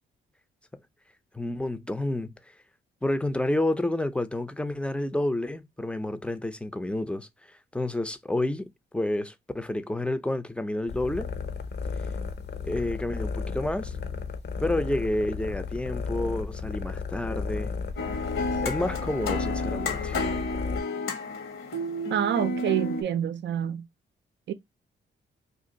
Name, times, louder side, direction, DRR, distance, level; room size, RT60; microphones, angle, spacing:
voice 1, 1.3-2.3 3.0-8.7 8.9-11.3 12.6-13.9 14.6-17.7 18.6-20.2, left 1 dB, 5° left, 0.5 m, -29 dB
sound 1, 10.9-20.8, left 5 dB, 55° left, 0.7 m, -34 dB
sound 2, 18.0-23.0, left 2 dB, 75° left, 1.1 m, -31 dB
voice 2, 22.1-23.9 24.5-24.6, right 10 dB, 60° right, 0.5 m, -27 dB
2.5 x 2.4 x 3.9 m
supercardioid pair, 55°, 21 cm